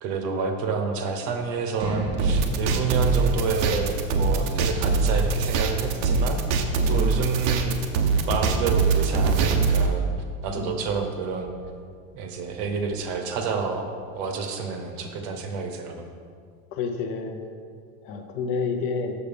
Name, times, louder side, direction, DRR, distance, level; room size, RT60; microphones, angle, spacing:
voice 1, 0.0-6.4 6.9-7.8 8.2-10.1 10.4-11.5 12.1-16.1, right 5 dB, 50° right, 5 dB, 0.9 m, -29 dB
sound 1, 1.8-13.6, right 2 dB, 15° right, 0.3 m, -36 dB
sound 2, 2.2-9.9, right 4 dB, 90° right, 0.9 m, -23 dB
voice 2, 16.7-17.4 18.0-19.2, left 5 dB, 40° left, 4 dB, 0.6 m, -29 dB
6.9 x 6.7 x 5.1 m, 2.2 s
cardioid pair, 175°, 34 cm